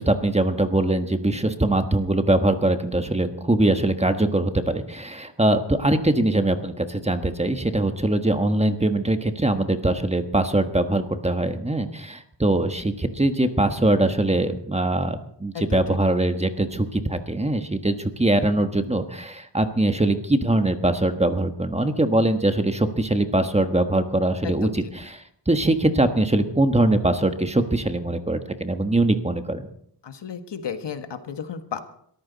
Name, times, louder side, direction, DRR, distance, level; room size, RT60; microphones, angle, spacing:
voice 1, 0.0-29.7, right 1 dB, 15° right, 8 dB, 1.3 m, -22 dB
voice 2, 30.0-31.8, left 7 dB, 75° left, 8 dB, 1.6 m, -33 dB
22.0 x 14.0 x 4.1 m, 0.68 s
wide cardioid pair, 100°, 42 cm